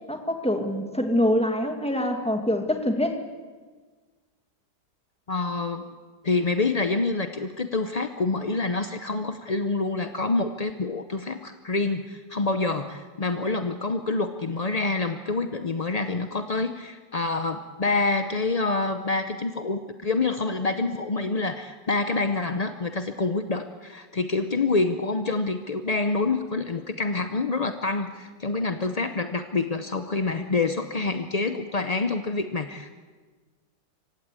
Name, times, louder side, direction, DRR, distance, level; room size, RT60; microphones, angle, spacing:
voice 1, 0.1-3.2, left 1 dB, 5° left, 5 dB, 1.7 m, -25 dB
voice 2, 5.3-5.9 6.2-32.9, left 3 dB, 45° left, 8 dB, 0.4 m, -27 dB
26.0 x 16.5 x 8.4 m, 1.4 s
omnidirectional pair, 1.9 m